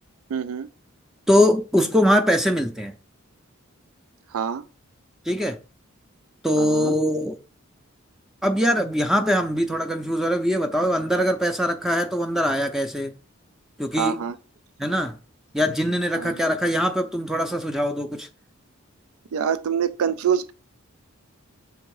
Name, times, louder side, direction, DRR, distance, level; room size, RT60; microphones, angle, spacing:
voice 1, 0.3-0.7 4.3-4.6 6.5-6.9 14.0-14.3 16.1-16.4 19.3-20.5, right 8 dB, 80° right, 0.4 m, -25 dB
voice 2, 1.3-2.9 5.3-5.6 6.4-7.4 8.4-13.1 13.8-14.2 14.8-15.1 15.5-18.3, equal, ahead, 0.5 m, -22 dB
7.0 x 3.5 x 4.8 m
head